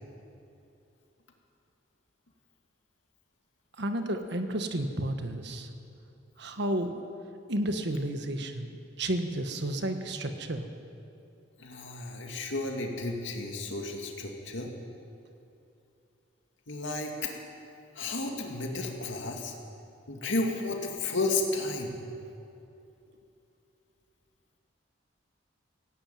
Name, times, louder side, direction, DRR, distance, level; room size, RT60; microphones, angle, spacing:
voice 1, 3.8-5.7 6.4-7.0 7.5-10.7, right 1 dB, 65° right, 6 dB, 1.4 m, -32 dB
voice 2, 11.6-14.7 16.7-17.3 17.9-19.5 20.1-22.0, left 2 dB, 85° left, 1 dB, 2.5 m, -32 dB
17.0 x 17.0 x 9.2 m, 2.7 s
head